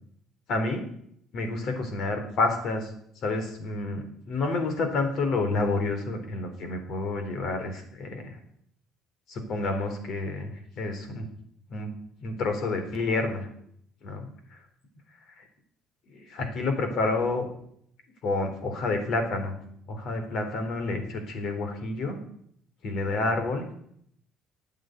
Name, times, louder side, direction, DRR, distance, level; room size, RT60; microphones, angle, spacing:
voice 1, 0.5-0.9 1.3-2.9 3.2-8.4 9.3-11.3 11.7-11.9 12.2-13.5 14.0-14.3 15.4-15.5 16.1-17.5 18.2-19.6 19.9-22.2 22.8-23.7, left 3 dB, 55° left, 6 dB, 3.8 m, -29 dB
13.5 x 8.7 x 9.4 m, 0.68 s
cardioid pair, 150°, 0 cm